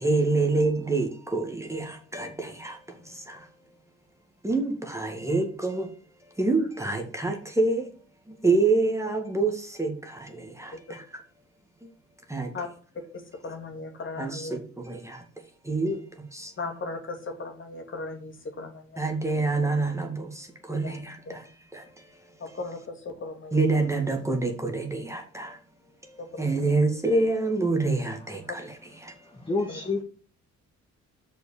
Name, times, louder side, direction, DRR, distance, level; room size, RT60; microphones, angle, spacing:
voice 1, 0.0-1.8 2.1-2.7 4.4-5.9 6.4-7.9 8.4-9.5 9.8-9.9 12.3-12.5 14.2-14.4 15.7-15.9 19.0-20.2 20.7-20.8 23.5-25.5 26.4-28.6, right 3 dB, 10° right, 3 dB, 2.0 m, -25 dB
voice 2, 13.1-14.5 16.6-19.1 20.8-21.0 21.3-21.4 22.4-23.9 26.2-26.7 29.7-29.8, left 3 dB, 40° left, 3 dB, 2.4 m, -37 dB
voice 3, 29.2-30.0, left 3 dB, 15° left, 1 dB, 1.6 m, -29 dB
6.3 x 5.7 x 6.6 m, 0.42 s
cardioid pair, 90°, 30 cm